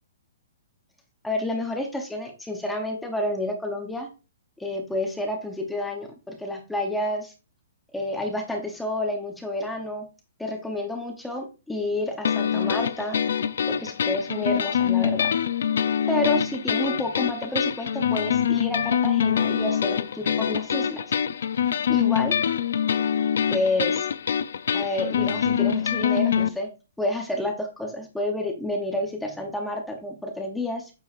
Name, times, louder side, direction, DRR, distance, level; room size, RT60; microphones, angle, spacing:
voice 1, 1.2-4.1 4.6-7.3 7.9-10.1 10.4-13.2 13.7-15.3 16.1-21.0 21.9-22.4 23.5-24.1 24.7-26.7 27.0-30.9, left 1 dB, ahead, 2 dB, 0.7 m, -29 dB
sound 1, 12.2-26.5, left 8 dB, 60° left, 0.4 m, -24 dB
8.3 x 4.6 x 2.5 m, 0.31 s
hypercardioid pair, 180°, 0 cm